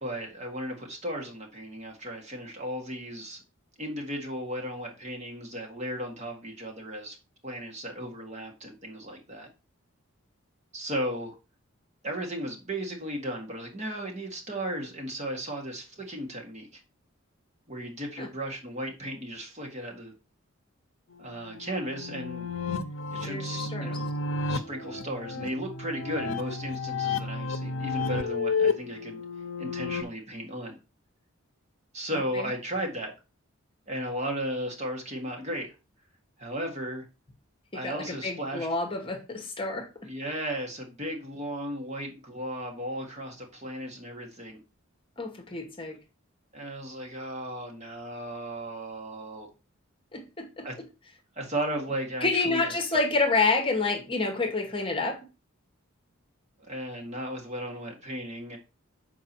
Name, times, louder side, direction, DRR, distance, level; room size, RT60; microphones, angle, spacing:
voice 1, 0.0-3.4 3.8-7.2 7.4-9.5 10.7-11.3 12.0-16.8 17.7-20.1 21.2-22.5 23.1-24.1 24.5-29.2 29.6-30.8 31.9-33.1 33.9-35.7 36.4-37.1 37.7-38.7 40.0-44.6 46.5-49.5 50.6-50.8 51.3-52.8 56.6-58.6, equal, 35° right, 1.7 m, -35 dB
sound 1, 21.2-30.0, left 4 dB, 70° left, 0.6 m, -32 dB
voice 2, 23.2-24.0 32.1-32.4 37.7-39.9 45.2-46.0 50.1-50.7 52.2-55.2, left 3 dB, 25° left, 1.1 m, -28 dB
6.6 x 4.7 x 4.4 m
head